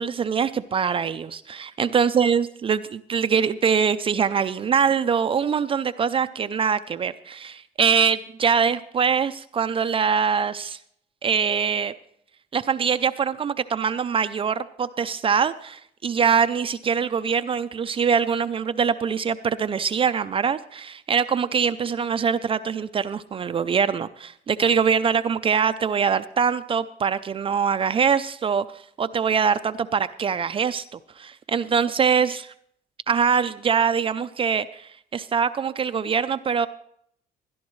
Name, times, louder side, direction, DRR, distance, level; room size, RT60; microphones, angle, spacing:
voice 1, 0.0-10.8 11.2-11.9 12.5-28.6 29.0-30.8 31.2-32.5 33.1-36.7, right 6 dB, 30° right, 12 dB, 0.4 m, -23 dB
19.0 x 11.5 x 3.1 m, 0.69 s
cardioid pair, 110°, 17 cm